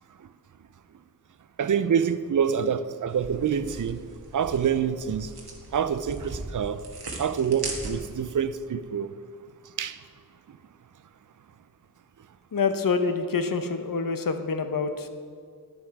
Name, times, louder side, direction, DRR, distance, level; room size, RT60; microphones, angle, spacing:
voice 1, 1.6-5.3 5.7-6.8 7.2-9.1 9.8-10.0, right 7 dB, 55° right, 0.5 m, -26 dB
sound 1, 3.1-8.3, right 2 dB, 80° right, 1.4 m, -39 dB
voice 2, 12.5-15.1, left 4 dB, 60° left, 0.8 m, -26 dB
9.9 x 7.1 x 4.7 m
wide cardioid pair, 50°, 37 cm